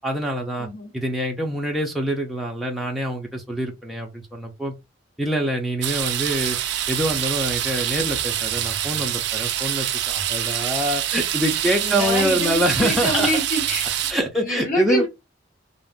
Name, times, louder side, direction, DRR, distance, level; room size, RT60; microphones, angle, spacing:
voice 1, 0.0-0.7 0.9-4.7 5.2-6.6 6.9-13.3 14.1-15.1, equal, ahead, 0.5 m, -25 dB
voice 2, 0.6-0.9 11.8-13.9 14.4-15.1, equal, 45° left, 1.3 m, -26 dB
sound 1, 5.8-14.1, right 11 dB, 60° right, 0.4 m, -25 dB
2.5 x 2.0 x 3.5 m
head